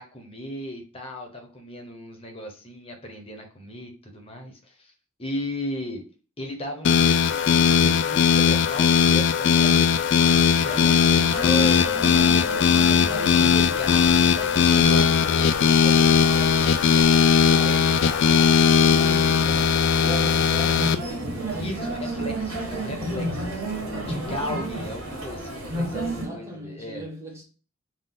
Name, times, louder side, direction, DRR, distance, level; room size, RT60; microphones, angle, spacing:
voice 1, 0.0-4.9 5.2-6.0 6.4-12.2 13.1-17.2 17.5-19.8 20.5-21.2 21.6-23.4 24.1-27.1, left 1 dB, 25° left, 1.0 m, -36 dB
sound 1, 6.8-21.0, left 6 dB, 55° left, 0.3 m, -19 dB
sound 2, 10.2-26.3, right 1 dB, 90° right, 1.7 m, -33 dB
voice 2, 18.4-22.4 23.0-23.6 25.9-27.4, equal, 15° right, 1.1 m, -38 dB
3.7 x 2.6 x 3.9 m
head